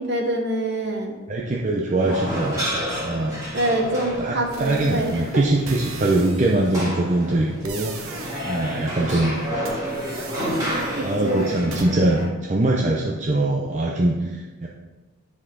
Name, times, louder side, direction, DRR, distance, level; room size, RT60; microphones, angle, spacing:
voice 1, 0.0-1.1 3.5-5.4 11.0-11.5, right 1 dB, 50° right, 2 dB, 1.1 m, -25 dB
voice 2, 1.3-3.4 4.2-8.1 8.4-9.4 11.0-14.7, right 2 dB, 35° right, -3 dB, 0.6 m, -22 dB
sound 1, 2.0-12.3, equal, 15° right, 1.8 m, -30 dB
sound 2, 4.5-6.8 7.6-9.2 9.6-11.9, right 4 dB, 75° right, 1.0 m, -39 dB
10.0 x 4.3 x 3.8 m, 1.2 s
head